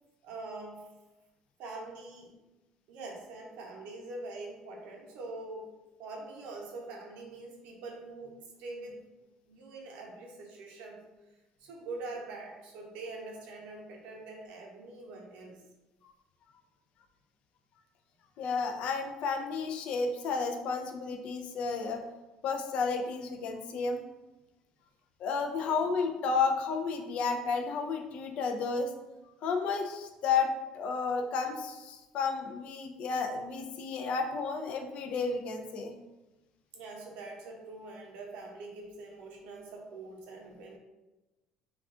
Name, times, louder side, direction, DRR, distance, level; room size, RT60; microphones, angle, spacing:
voice 1, 0.2-0.9 1.6-2.3 2.9-5.7 6.0-9.0 9.5-11.1 11.6-15.6 25.6-25.8 36.7-40.8, right 2 dB, 75° right, 0 dB, 0.7 m, -44 dB
voice 2, 18.4-22.0 22.4-24.0 25.2-28.9 29.4-30.5 30.7-36.0, left 5 dB, 60° left, 4 dB, 0.4 m, -32 dB
2.3 x 2.3 x 3.6 m, 1.1 s
cardioid pair, 110°, 2 cm